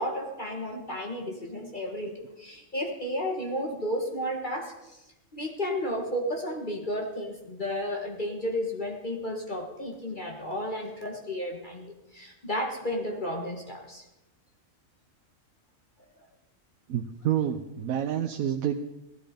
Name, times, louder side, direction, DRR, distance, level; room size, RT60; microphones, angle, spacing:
voice 1, 0.0-5.0 5.3-14.0, equal, 35° left, 2 dB, 1.6 m, -33 dB
voice 2, 16.9-18.8, right 10 dB, 90° right, 4 dB, 1.2 m, -28 dB
16.0 x 12.5 x 5.1 m, 0.95 s
omnidirectional pair, 1.5 m